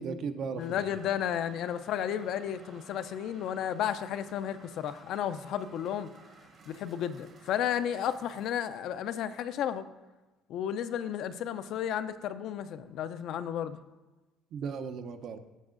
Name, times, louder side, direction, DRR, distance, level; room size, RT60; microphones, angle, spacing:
voice 1, 0.0-1.0 14.5-15.4, right 5 dB, 60° right, 9 dB, 0.6 m, -36 dB
voice 2, 0.5-6.1 6.7-9.9 10.5-13.8, left 9 dB, 65° left, 11 dB, 0.4 m, -33 dB
sound 1, 0.6-8.5, right 4 dB, 45° right, 1.0 m, -56 dB
14.5 x 5.4 x 2.5 m, 1.1 s
cardioid pair, 115°, 0 cm